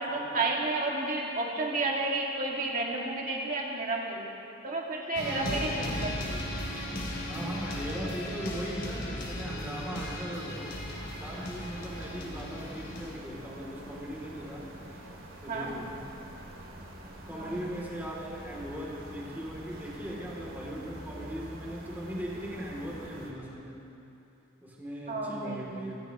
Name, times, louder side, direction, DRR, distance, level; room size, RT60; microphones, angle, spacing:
voice 1, 0.0-4.2 4.6-6.4 15.5-15.7 17.3-17.7 25.1-25.9, right 2 dB, 45° right, -2 dB, 2.2 m, -31 dB
sound 1, 5.1-13.1, left 1 dB, 60° left, 2.7 m, -36 dB
voice 2, 5.2-6.4 7.3-10.7 11.2-15.0 15.4-16.1 17.3-23.8 24.6-26.0, equal, 10° right, -5 dB, 2.8 m, -39 dB
sound 2, 10.5-23.3, right 1 dB, 85° right, 2.5 m, -46 dB
24.5 x 15.5 x 3.0 m, 2.9 s
head